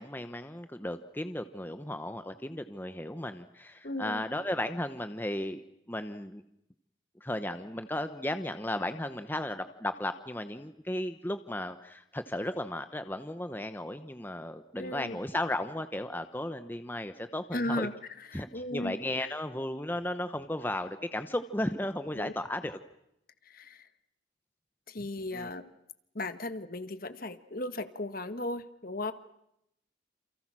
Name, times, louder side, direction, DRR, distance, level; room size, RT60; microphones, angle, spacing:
voice 1, 0.0-5.6 5.9-6.4 7.2-17.9 18.3-22.8 25.3-25.5, left 1 dB, 10° left, 9 dB, 0.9 m, -35 dB
voice 2, 3.8-4.2 14.8-15.2 17.5-17.9 18.2-18.9 19.2-19.3 22.2-22.3 23.4-23.9 24.9-25.7 26.1-29.1, left 1 dB, 50° left, 10 dB, 1.5 m, -36 dB
29.0 x 28.5 x 6.2 m, 0.80 s
head